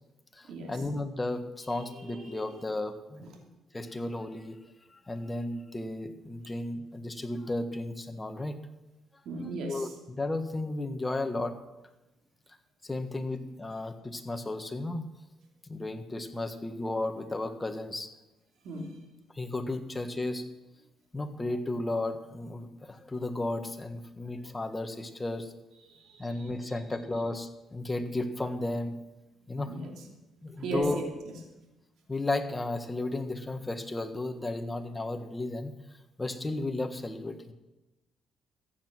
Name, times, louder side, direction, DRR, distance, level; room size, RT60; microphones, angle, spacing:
voice 1, 0.3-3.3 3.7-4.6 4.9-8.6 9.7-11.5 12.8-15.0 15.7-18.1 19.3-20.4 21.1-25.5 26.2-28.9 29.5-29.7 30.4-31.0 32.1-35.7 36.2-37.5, left 2 dB, 20° left, 7 dB, 1.6 m, -34 dB
voice 2, 1.9-2.4 3.2-3.3 9.2-9.9 18.6-18.9 25.9-26.5 29.7-29.9 30.6-31.1, right 2 dB, 75° right, 2 dB, 2.9 m, -37 dB
14.5 x 9.4 x 6.2 m, 1.0 s
cardioid pair, 90°, 0 cm